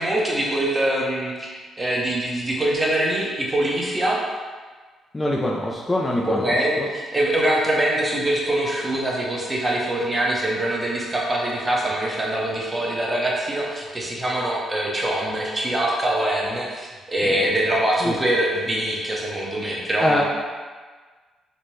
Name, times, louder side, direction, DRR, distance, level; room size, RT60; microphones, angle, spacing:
voice 1, 0.0-4.2 6.2-20.2, right 1 dB, 20° right, -3 dB, 0.8 m, -23 dB
voice 2, 5.1-6.9 17.2-17.4 18.0-18.2 20.0-20.2, left 1 dB, 20° left, -2 dB, 0.4 m, -24 dB
4.2 x 2.1 x 3.1 m, 1.4 s
cardioid pair, 90°, 0 cm